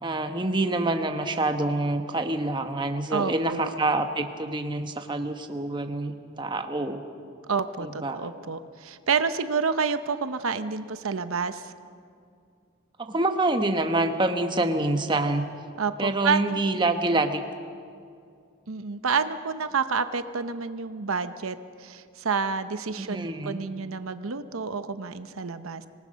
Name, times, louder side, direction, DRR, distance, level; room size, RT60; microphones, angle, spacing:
voice 1, 0.0-7.0 7.8-8.3 13.0-15.4 16.0-17.4 23.0-23.6, right 2 dB, 20° right, 6 dB, 1.1 m, -26 dB
voice 2, 3.1-3.7 7.5-11.7 15.8-16.6 18.7-25.9, right 5 dB, 85° right, 11 dB, 0.8 m, -29 dB
25.5 x 18.5 x 6.4 m, 2.3 s
head